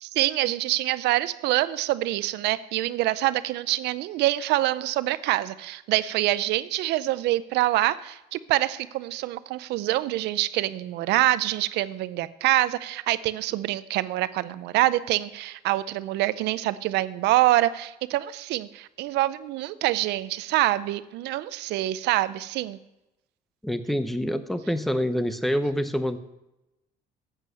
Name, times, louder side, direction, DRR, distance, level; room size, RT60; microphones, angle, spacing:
voice 1, 0.0-22.8, right 16 dB, 85° right, 15 dB, 0.5 m, -25 dB
voice 2, 23.6-26.2, equal, ahead, 10 dB, 0.7 m, -26 dB
8.1 x 7.6 x 8.3 m, 0.93 s
cardioid pair, 110°, 17 cm